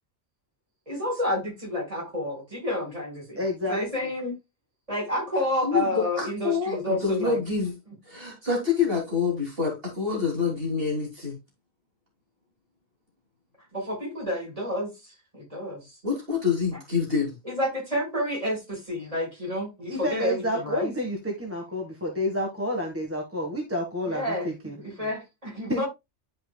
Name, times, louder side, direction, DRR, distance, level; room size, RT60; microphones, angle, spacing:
voice 1, 0.9-4.4 4.9-7.4 13.7-16.0 17.4-20.9 24.1-25.9, left 1 dB, 30° right, 5.4 m, -30 dB
voice 2, 3.4-3.8 19.9-24.7 25.7-25.8, equal, 10° right, 1.6 m, -29 dB
voice 3, 5.6-7.7 8.1-11.4 16.0-17.3, left 5 dB, 50° right, 3.3 m, -27 dB
12.0 x 5.2 x 2.3 m
omnidirectional pair, 1.2 m